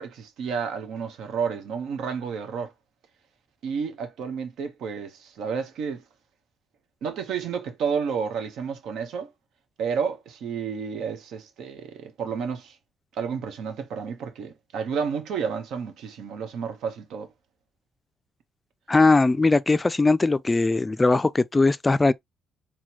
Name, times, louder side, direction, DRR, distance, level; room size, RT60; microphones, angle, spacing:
voice 1, 0.0-2.7 3.6-6.0 7.0-9.3 9.8-12.8 13.1-17.3, right 6 dB, 80° right, 1.0 m, -31 dB
voice 2, 18.9-22.1, left 3 dB, 20° left, 0.3 m, -20 dB
4.2 x 2.2 x 2.9 m
cardioid pair, 90°, 0 cm